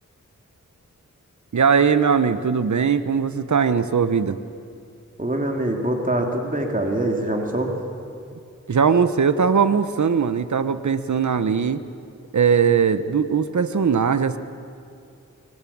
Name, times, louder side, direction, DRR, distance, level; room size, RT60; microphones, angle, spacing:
voice 1, 1.5-4.4 8.7-11.8 12.3-14.4, right 6 dB, 65° right, 11 dB, 1.1 m, -20 dB
voice 2, 5.2-7.7, right 1 dB, 25° right, 1 dB, 3.1 m, -24 dB
23.5 x 19.5 x 8.7 m, 2.4 s
wide cardioid pair, 60°, 31 cm